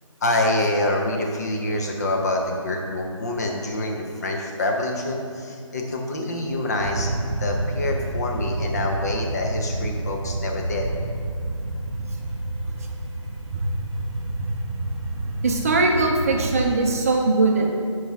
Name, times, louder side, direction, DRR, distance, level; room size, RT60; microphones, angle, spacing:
voice 1, 0.2-7.1 7.4-10.9, left 1 dB, 30° left, 1 dB, 0.7 m, -26 dB
sound 1, 6.8-16.7, right 2 dB, 45° right, 1.4 m, -29 dB
voice 2, 15.4-17.8, right 3 dB, 30° right, 1 dB, 0.6 m, -21 dB
8.8 x 4.8 x 3.6 m, 2.3 s
figure-of-eight pair, 165°, 17 cm